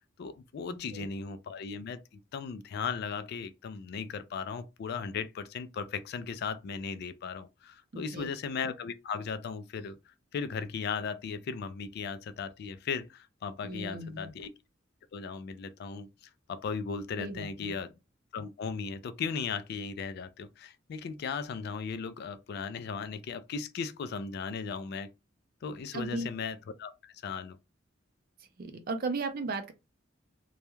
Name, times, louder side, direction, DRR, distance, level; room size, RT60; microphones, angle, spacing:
voice 1, 0.2-14.5 15.1-16.1 16.5-17.9 18.3-25.1 25.6-27.6, left 5 dB, 55° left, 0.3 m, -37 dB
voice 2, 0.7-1.1 7.9-8.3 13.6-14.3 17.2-17.7 25.9-26.3 28.6-29.7, right 3 dB, 50° right, 0.5 m, -36 dB
2.3 x 2.1 x 2.9 m
head